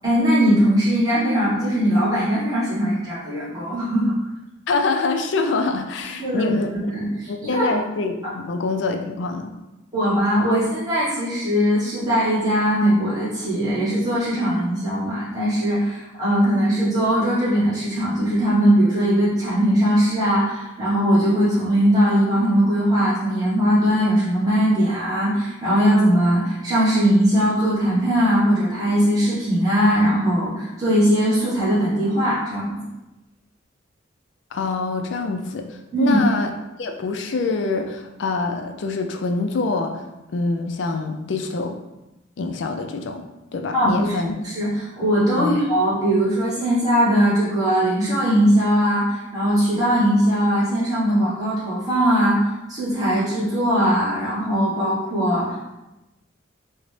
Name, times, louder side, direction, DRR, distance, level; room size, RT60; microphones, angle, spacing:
voice 1, 0.0-4.2 6.2-6.6 6.9-7.8 8.2-8.3 9.9-32.8 35.9-36.2 43.7-55.6, equal, 20° right, -11 dB, 1.1 m, -20 dB
voice 2, 4.7-6.7 7.3-9.5 34.5-36.5 36.8-40.0 40.3-41.8 42.4-43.2 43.5-44.3 45.4-45.6, left 3 dB, 65° left, 5 dB, 0.4 m, -25 dB
3.8 x 2.1 x 3.2 m, 0.99 s
head